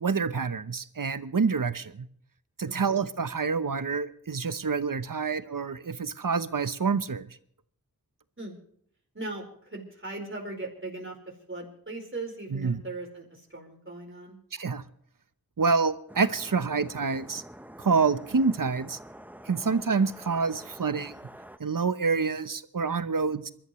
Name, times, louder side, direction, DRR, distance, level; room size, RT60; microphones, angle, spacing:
voice 1, 0.0-2.1 2.6-7.3 12.5-12.8 14.5-14.8 15.6-17.4 17.8-19.0 19.5-21.1 21.6-23.5, right 5 dB, 65° right, 13 dB, 0.9 m, -27 dB
voice 2, 2.7-3.0 8.4-8.6 9.1-14.4 19.5-19.7, right 2 dB, 35° right, 0 dB, 4.5 m, -39 dB
sound 1, 16.1-21.6, right 1 dB, 5° right, 0.8 m, -47 dB
27.0 x 13.0 x 3.1 m, 0.67 s
wide cardioid pair, 45°, 35 cm